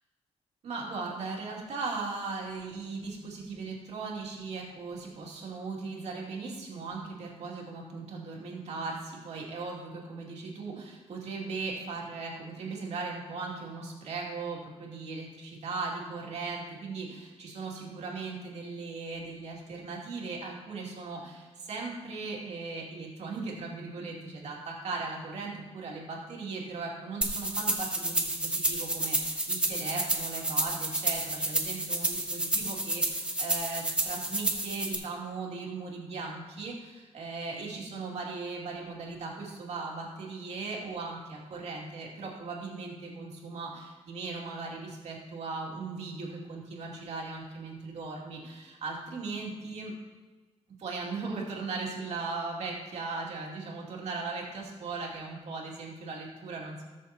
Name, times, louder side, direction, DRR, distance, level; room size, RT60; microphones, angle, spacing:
voice 1, 0.6-49.9 50.8-56.8, right 3 dB, 75° right, -2 dB, 2.5 m, -38 dB
sound 1, 27.2-34.9, right 1 dB, 10° right, 1.2 m, -30 dB
18.5 x 6.8 x 2.9 m, 1.3 s
cardioid pair, 120°, 11 cm